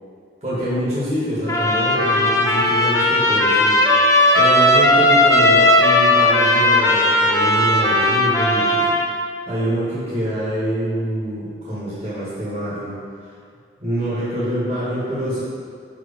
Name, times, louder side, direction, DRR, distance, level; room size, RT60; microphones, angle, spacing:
voice 1, 0.4-3.8 4.4-8.9 9.5-13.0 13.8-15.4, equal, 35° right, -10 dB, 1.8 m, -25 dB
Trumpet, 1.5-9.1, left 1 dB, 20° left, 0.6 m, -16 dB
6.0 x 4.9 x 5.3 m, 2.2 s
head